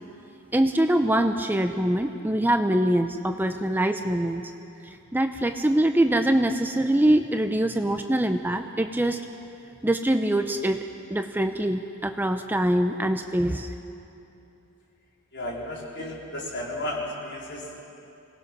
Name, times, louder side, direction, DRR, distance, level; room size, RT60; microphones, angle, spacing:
voice 1, 0.5-4.4 5.1-9.2 9.8-10.8 11.1-13.7, right 1 dB, 10° right, 6 dB, 0.6 m, -23 dB
voice 2, 15.3-17.8, left 1 dB, 55° left, -3 dB, 4.1 m, -33 dB
26.0 x 18.5 x 6.1 m, 2.9 s
head